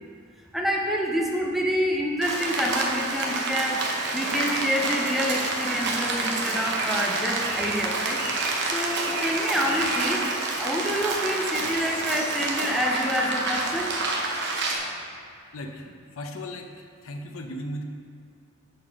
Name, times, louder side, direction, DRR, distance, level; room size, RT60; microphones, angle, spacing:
voice 1, 0.5-8.2 8.7-10.3 10.6-13.9, equal, ahead, -1 dB, 0.5 m, -27 dB
Rain, 2.2-14.8, right 3 dB, 60° right, 0.8 m, -28 dB
voice 2, 15.5-17.8, left 1 dB, 80° left, 4 dB, 0.6 m, -37 dB
6.5 x 4.1 x 5.0 m, 2.1 s
head